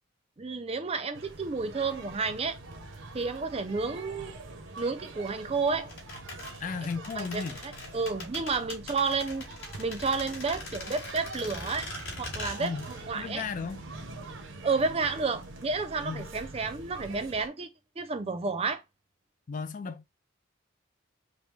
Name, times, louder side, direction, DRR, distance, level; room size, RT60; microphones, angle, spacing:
voice 1, 0.4-2.6 3.1-4.3 4.8-5.9 7.1-9.5 9.8-11.9 12.2-13.4 14.6-17.7 18.0-18.8, right 4 dB, 30° right, 0.5 m, -31 dB
sound 1, 1.1-17.5, right 2 dB, 75° right, 0.9 m, -44 dB
sound 2, 5.9-13.1 13.3-13.4, left 2 dB, 70° left, 2.9 m, -41 dB
voice 2, 6.6-7.6 12.6-12.8 13.1-13.8 16.0-16.3 19.5-20.1, left 5 dB, 40° left, 0.4 m, -35 dB
5.1 x 2.2 x 3.2 m
head